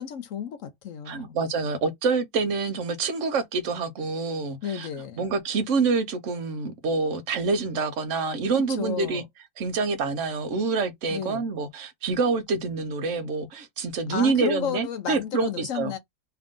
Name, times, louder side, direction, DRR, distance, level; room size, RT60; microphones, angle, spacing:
voice 1, 0.0-1.4 4.6-5.3 8.6-9.3 11.1-11.5 14.1-16.0, left 8 dB, 65° left, 0.9 m, -32 dB
voice 2, 1.1-4.9 5.2-9.2 9.6-15.9, right 4 dB, 55° right, 1.1 m, -27 dB
3.3 x 2.5 x 3.6 m
omnidirectional pair, 1.6 m